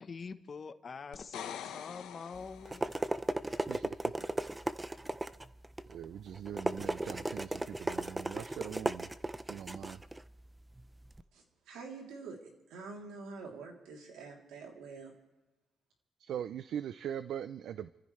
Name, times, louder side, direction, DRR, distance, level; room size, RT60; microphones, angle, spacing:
voice 1, 0.0-2.9, left 5 dB, 40° left, 1.0 m, -45 dB
sound 1, 1.1-3.1 6.8-6.9, left 9 dB, 90° left, 1.1 m, -45 dB
sound 2, 2.3-11.2, right 2 dB, 15° right, 0.6 m, -37 dB
voice 2, 3.4-4.0 5.9-9.1 9.5-10.0 16.2-17.9, right 9 dB, 70° right, 0.5 m, -41 dB
voice 3, 11.3-15.1, right 4 dB, 90° right, 3.2 m, -47 dB
30.0 x 15.0 x 3.3 m
cardioid pair, 90°, 0 cm